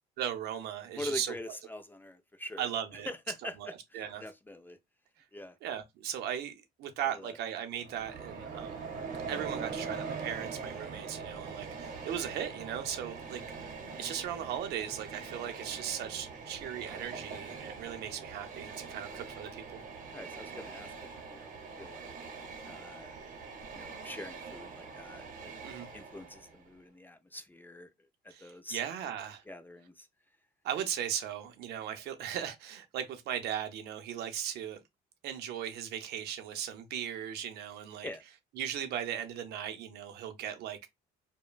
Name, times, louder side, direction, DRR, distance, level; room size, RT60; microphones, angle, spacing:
voice 1, 0.2-1.3 2.6-3.1 3.6-4.2 5.6-6.5 6.8-8.9 9.3-13.4 14.0-19.8 25.6-25.9 28.3-29.4 30.6-34.8 35.2-38.1 38.6-40.9, right 9 dB, 75° right, 0.6 m, -37 dB
voice 2, 1.0-2.7 3.1-4.8 5.3-5.6 7.0-7.4 20.1-20.9 21.3-22.1 22.6-23.1 23.7-25.5 25.9-27.9 28.2-28.8 29.5-30.1 38.0-38.2, left 1 dB, 10° left, 0.3 m, -44 dB
Train, 7.8-26.7, right 5 dB, 50° right, 0.8 m, -43 dB
2.9 x 2.1 x 2.3 m
cardioid pair, 110°, 17 cm